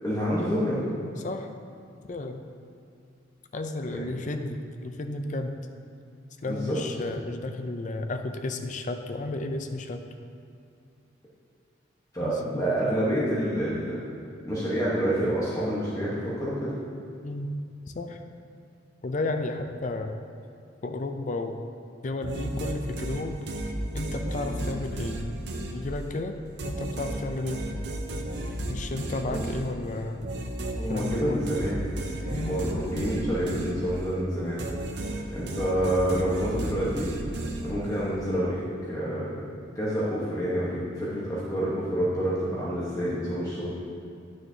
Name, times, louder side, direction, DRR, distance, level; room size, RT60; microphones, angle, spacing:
voice 1, 0.0-0.8 3.9-4.1 6.5-6.8 12.1-14.0 14.4-16.7 29.3-29.4 30.8-31.8 32.2-34.6 34.9-35.0 35.3-37.1 37.6-39.4 39.7-43.7, equal, 15° left, -8 dB, 1.1 m, -28 dB
voice 2, 2.1-2.4 3.5-5.6 6.4-10.0 12.2-13.0 17.2-17.5 18.0-18.2 19.0-20.2 20.8-21.6 22.0-23.4 23.9-25.2 25.7-26.4 26.6-27.7 28.7-30.3 30.9-31.5 32.3-32.6, left 2 dB, 40° left, 6 dB, 0.4 m, -33 dB
sound 1, 22.2-26.2 26.6-34.2 34.6-38.1, right 1 dB, 60° right, 0.7 m, -34 dB
10.5 x 6.3 x 2.8 m, 2.4 s
head